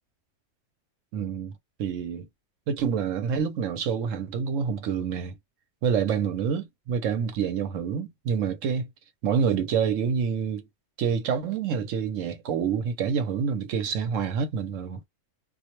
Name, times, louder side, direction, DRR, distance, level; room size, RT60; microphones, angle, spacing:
voice 1, 1.1-1.5 1.8-2.3 2.7-5.4 5.8-8.9 9.2-10.7 11.0-15.1, right 7 dB, 75° right, 0.9 m, -27 dB
2.4 x 2.0 x 2.9 m
omnidirectional pair, 1.4 m